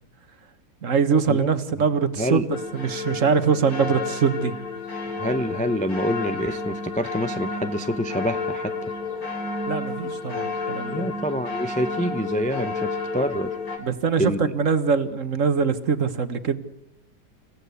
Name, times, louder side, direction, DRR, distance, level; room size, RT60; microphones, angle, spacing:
voice 1, 0.8-4.5 9.7-11.1 13.8-16.6, right 6 dB, 50° right, 11 dB, 1.5 m, -23 dB
sound 1, 2.5-13.8, left 3 dB, 55° left, 3.7 m, -31 dB
voice 2, 5.2-8.9 10.9-13.6 14.2-14.5, equal, 10° left, 9 dB, 0.3 m, -27 dB
29.5 x 16.0 x 8.2 m, 0.86 s
omnidirectional pair, 1.9 m